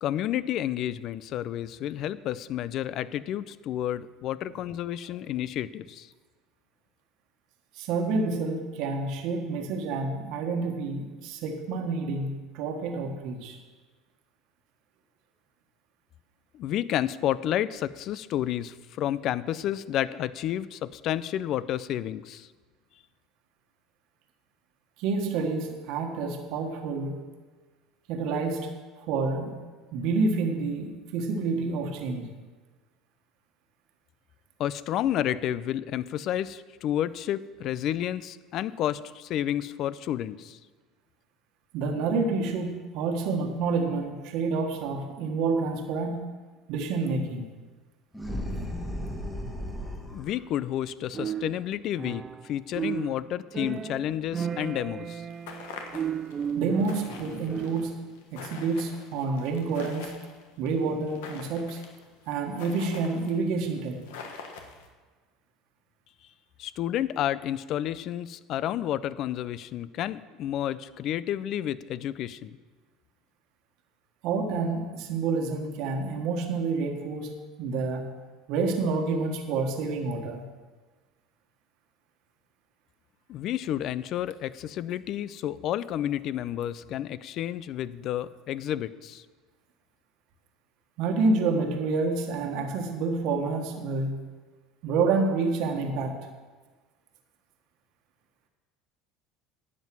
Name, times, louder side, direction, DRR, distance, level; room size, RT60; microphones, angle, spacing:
voice 1, 0.0-6.1 16.5-22.5 34.6-40.6 50.1-55.3 66.6-72.6 83.3-89.2, left 11 dB, 55° left, 17 dB, 0.5 m, -30 dB
voice 2, 7.7-13.6 25.0-27.2 28.1-28.7 29.1-29.5 29.9-32.3 41.7-46.2 46.7-47.4 56.6-57.9 58.3-60.2 60.6-61.8 62.3-64.0 74.2-77.3 77.6-78.1 78.5-80.5 91.0-94.2 94.8-96.2, right 4 dB, 65° right, 3 dB, 1.4 m, -28 dB
sound 1, 48.1-50.3, equal, 5° left, 1.9 m, -34 dB
sound 2, 51.1-58.0, right 8 dB, 35° right, 0.3 m, -34 dB
sound 3, 55.1-64.9, left 5 dB, 85° left, 1.3 m, -45 dB
11.0 x 7.5 x 6.2 m, 1.3 s
supercardioid pair, 100°, 0 cm